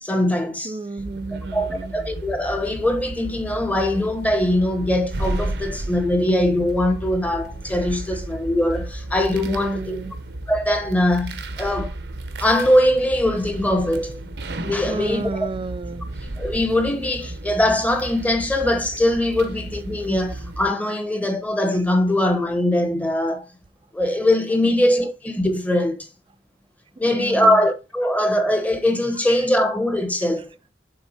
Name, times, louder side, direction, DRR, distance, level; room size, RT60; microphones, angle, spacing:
voice 1, 0.0-0.8 1.5-10.0 10.5-11.9 12.4-14.2 14.6-15.5 16.4-23.5 23.9-26.1 27.0-30.5, left 1 dB, 10° left, 0.9 m, -21 dB
voice 2, 0.6-2.0 9.5-10.2 14.9-16.1 24.6-24.8 27.1-27.7, right 3 dB, 30° right, 0.3 m, -32 dB
sound 1, 1.0-20.7, right 2 dB, 65° right, 0.7 m, -33 dB
6.9 x 3.5 x 4.1 m
head